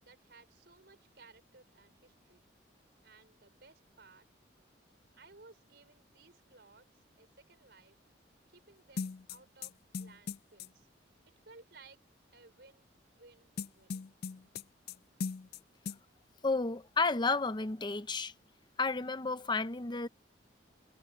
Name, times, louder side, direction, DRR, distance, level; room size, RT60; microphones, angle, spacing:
voice 1, 0.0-2.5 3.0-4.3 5.1-8.0 8.5-10.9 11.5-12.0 12.3-14.0, right 3 dB, 60° right, 5.2 m, -59 dB
sound 1, 9.0-10.7 13.6-15.0 15.2-15.6 15.9-16.0, left 5 dB, 55° left, 0.4 m, -38 dB
voice 2, 16.4-18.3 18.8-20.1, left 3 dB, 25° left, 0.7 m, -32 dB
head